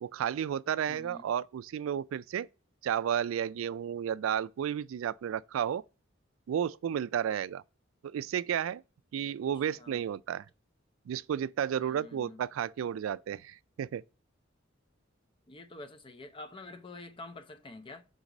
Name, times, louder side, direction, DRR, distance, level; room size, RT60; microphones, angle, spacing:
voice 1, 0.0-2.5 2.8-5.8 6.5-7.6 8.0-8.8 9.1-10.4 11.1-14.0, right 9 dB, 85° right, 0.3 m, -32 dB
voice 2, 0.9-1.3 9.7-10.0 11.8-12.5 15.5-18.0, left 2 dB, 25° left, 0.6 m, -47 dB
5.2 x 4.0 x 5.9 m
head